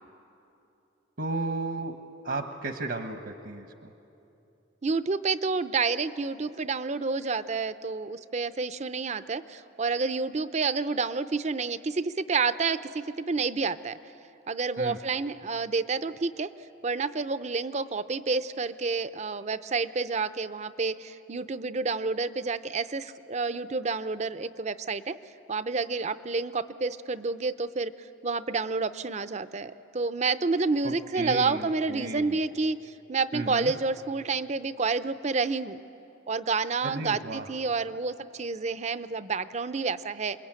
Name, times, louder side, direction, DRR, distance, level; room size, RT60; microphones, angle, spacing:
voice 1, 1.2-1.9 2.2-3.7 14.8-15.0 30.8-32.4 33.3-33.7 36.8-37.5, right 2 dB, 65° right, 6 dB, 1.2 m, -34 dB
voice 2, 4.8-14.0 14.5-16.5 16.8-25.2 25.5-27.9 28.2-35.8 36.3-40.4, right 4 dB, 40° right, 13 dB, 0.6 m, -29 dB
28.5 x 21.5 x 8.9 m, 2.9 s
head